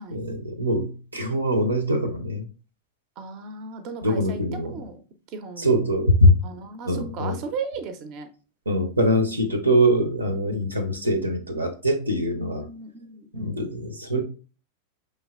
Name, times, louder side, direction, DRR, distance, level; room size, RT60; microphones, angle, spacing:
voice 1, 0.0-2.5 4.0-4.8 5.6-6.4 6.8-7.4 8.7-12.6 13.3-14.2, equal, 80° right, 7 dB, 0.6 m, -23 dB
voice 2, 3.2-5.0 5.3-5.8 6.4-8.3 10.5-10.7 12.3-13.7, right 4 dB, 40° right, 9 dB, 0.5 m, -36 dB
5.3 x 3.2 x 2.3 m, 0.36 s
figure-of-eight pair, 90°, 0 cm